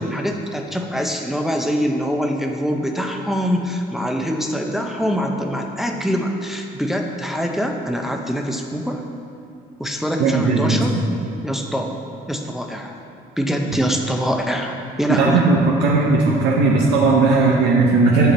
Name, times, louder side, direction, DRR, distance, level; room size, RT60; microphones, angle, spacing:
voice 1, 0.0-9.0 9.8-11.0 11.4-12.0 12.3-13.0 13.4-15.4, equal, ahead, 2 dB, 0.6 m, -24 dB
voice 2, 10.2-10.8 15.1-18.3, right 3 dB, 85° right, -3 dB, 0.9 m, -16 dB
7.5 x 5.9 x 4.1 m, 2.5 s
cardioid pair, 110°, 17 cm